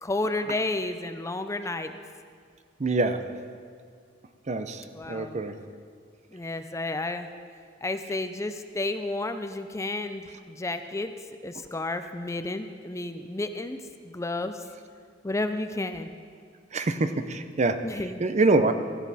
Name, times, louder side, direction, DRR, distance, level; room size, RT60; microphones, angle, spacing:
voice 1, 0.0-2.0 4.9-5.4 6.3-7.3 7.8-11.1 11.4-13.8 14.0-14.6 15.2-16.1 17.8-18.2, left 2 dB, 15° left, 8 dB, 0.5 m, -31 dB
voice 2, 2.8-3.2 4.5-5.6 16.7-17.8 18.2-18.7, right 3 dB, 35° right, 9 dB, 0.6 m, -25 dB
16.5 x 14.5 x 4.2 m, 2.1 s
head